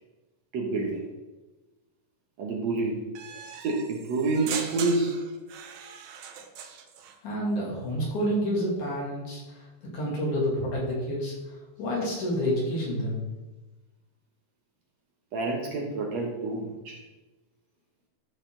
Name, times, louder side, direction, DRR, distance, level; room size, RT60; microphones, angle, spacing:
voice 1, 0.5-1.1 2.4-3.1 3.6-5.2 15.3-17.0, right 3 dB, 60° right, -1 dB, 2.1 m, -28 dB
sound 1, 3.1-7.2, right 7 dB, 85° right, 1.3 m, -39 dB
voice 2, 7.2-9.4 9.9-11.3 11.8-13.2, equal, 60° left, -4 dB, 3.8 m, -28 dB
13.0 x 7.0 x 3.9 m, 1.1 s
omnidirectional pair, 4.0 m